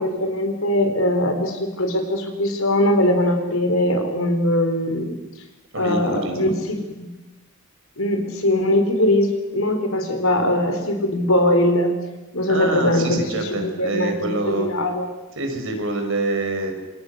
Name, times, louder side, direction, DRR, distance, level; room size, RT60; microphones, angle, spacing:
voice 1, 0.0-5.2 5.8-7.1 8.0-11.9 12.3-13.2 13.5-15.1, left 1 dB, 65° left, 6 dB, 4.4 m, -21 dB
voice 2, 5.7-6.5 12.5-14.7 15.4-16.8, right 2 dB, 60° right, 4 dB, 5.3 m, -26 dB
27.5 x 26.0 x 6.6 m, 1.1 s
head